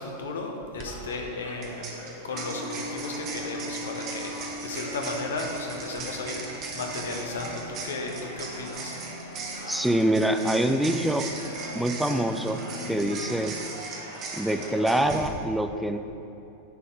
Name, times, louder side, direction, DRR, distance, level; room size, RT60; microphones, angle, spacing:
voice 1, 0.0-1.9 2.2-9.0, left 3 dB, 65° left, 2 dB, 1.0 m, -35 dB
sound 1, 0.6-0.9 1.6-15.3, right 4 dB, 35° right, 1.0 m, -39 dB
sound 2, 0.8-15.2, right 1 dB, 80° right, 1.7 m, -43 dB
sound 3, 2.3-13.3, left 2 dB, 35° left, 1.0 m, -42 dB
voice 2, 9.7-11.3 11.7-13.6 14.3-16.0, right 1 dB, ahead, 7 dB, 0.4 m, -25 dB
10.0 x 4.2 x 4.9 m, 2.9 s
figure-of-eight pair, 90°, 0 cm